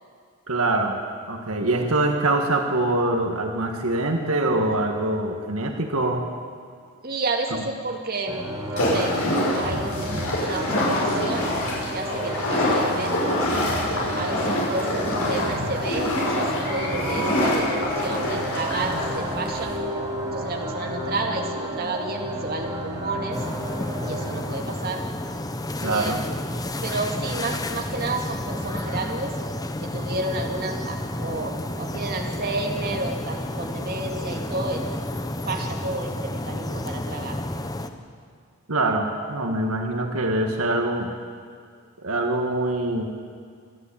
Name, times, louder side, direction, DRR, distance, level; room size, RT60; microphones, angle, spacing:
voice 1, 0.5-1.0 1.3-6.3 25.8-26.2 38.7-41.1 42.0-43.1, right 2 dB, 80° right, 3 dB, 1.8 m, -24 dB
voice 2, 7.0-9.1 9.5-11.5 11.9-13.5 14.2-19.7 20.2-23.4 24.0-25.0 25.8-29.3 29.8-34.9 35.4-37.4, right 2 dB, 45° right, 1 dB, 2.3 m, -31 dB
sound 1, 8.3-24.4, equal, 15° right, 2.8 m, -32 dB
sound 2, 8.8-19.8, left 1 dB, 80° left, 6.5 m, -25 dB
sound 3, 23.3-37.9, left 1 dB, 15° left, 0.9 m, -31 dB
27.0 x 11.5 x 8.7 m, 2.2 s
head